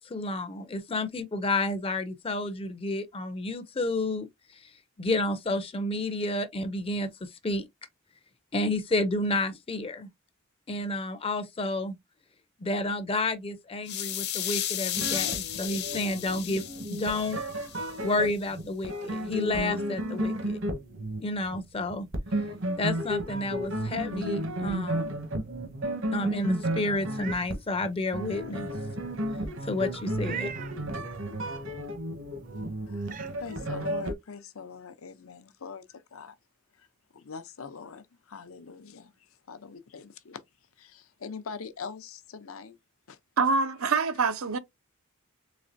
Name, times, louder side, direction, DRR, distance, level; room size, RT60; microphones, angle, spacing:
voice 1, 0.0-4.3 4.5-4.7 5.0-7.6 8.5-10.1 10.7-11.9 12.6-16.6 16.9-17.4 18.0-20.6 21.2-22.1 22.8-25.1 26.1-28.7 29.6-30.5, left 2 dB, 25° left, 0.5 m, -30 dB
sound 1, 13.9-17.9, left 11 dB, 55° left, 0.8 m, -33 dB
sound 2, 14.9-34.1, right 1 dB, 65° right, 1.1 m, -33 dB
Meow, 27.0-27.5 28.0-28.1 30.2-30.8 32.4-32.5 33.0-33.3, right 8 dB, 40° right, 0.4 m, -39 dB
voice 2, 32.9-36.4 36.8-36.9 37.1-40.4 40.8-42.8 43.1-43.2, left 5 dB, 85° left, 0.7 m, -43 dB
voice 3, 43.4-44.6, right 4 dB, 90° right, 0.7 m, -25 dB
4.1 x 3.2 x 2.6 m
head